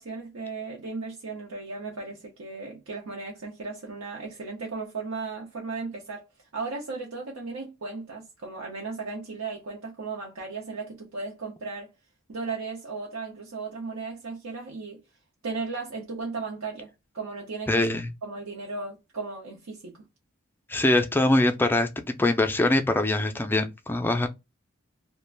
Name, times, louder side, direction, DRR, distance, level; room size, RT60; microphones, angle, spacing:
voice 1, 0.0-11.9 12.3-15.0 15.4-16.9 17.1-17.9 18.2-20.0, right 4 dB, 85° right, 0.7 m, -36 dB
voice 2, 17.7-18.1 20.7-21.9 22.2-24.3, left 2 dB, 10° left, 0.4 m, -23 dB
2.4 x 2.1 x 3.1 m
head